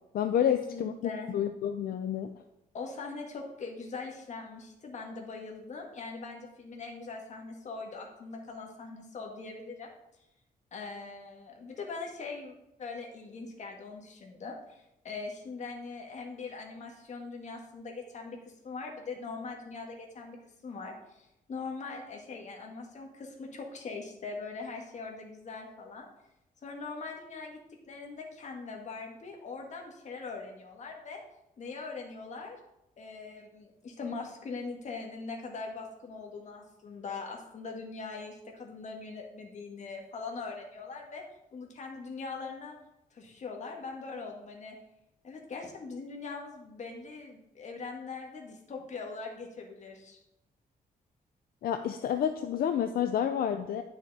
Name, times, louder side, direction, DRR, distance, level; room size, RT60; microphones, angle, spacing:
voice 1, 0.1-0.9 1.3-2.3 51.6-53.8, left 9 dB, 80° left, 7 dB, 0.5 m, -29 dB
voice 2, 0.7-1.3 2.7-9.9 10.7-18.4 18.6-20.4 20.6-26.1 26.6-27.6 27.9-31.2 31.6-32.6 33.0-41.2 41.5-42.7 43.1-44.8 45.2-50.2, left 4 dB, 50° left, 1 dB, 1.8 m, -41 dB
10.5 x 6.2 x 4.2 m, 0.88 s
wide cardioid pair, 150°, 15 cm